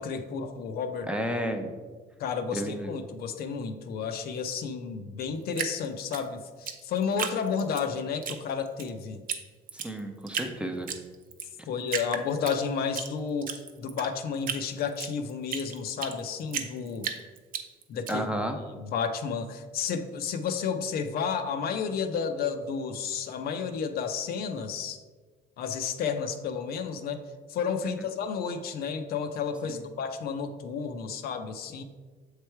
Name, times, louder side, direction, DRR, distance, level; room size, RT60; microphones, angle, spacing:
voice 1, 0.0-1.1 2.2-9.2 11.7-17.1 17.9-18.3 18.7-25.0 25.6-27.2 27.5-31.8, left 6 dB, 65° left, 7 dB, 0.6 m, -31 dB
voice 2, 1.1-1.7 2.5-3.0 9.7-10.9 11.6-11.7 18.1-18.6 27.8-27.9 29.7-29.8, right 1 dB, 5° right, 4 dB, 0.6 m, -32 dB
Drip, 5.5-7.9 8.2-8.9 9.3-9.4 9.7-10.5 10.9-11.5 11.9-13.1 13.4-16.2 16.5-18.1, right 7 dB, 55° right, 0.7 m, -34 dB
7.4 x 3.2 x 4.5 m, 1.4 s
cardioid pair, 110°, 17 cm